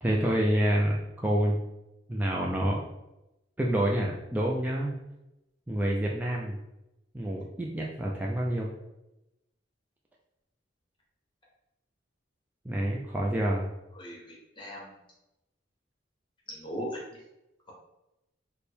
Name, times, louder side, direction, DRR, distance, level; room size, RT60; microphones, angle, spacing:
voice 1, 0.0-1.6 2.1-2.8 3.6-5.0 5.7-6.6 7.1-8.7 12.6-13.7, right 1 dB, 10° right, -2 dB, 0.3 m, -27 dB
voice 2, 14.0-14.9 16.5-16.9, equal, 25° left, -3 dB, 1.1 m, -39 dB
4.2 x 2.2 x 3.4 m, 0.93 s
head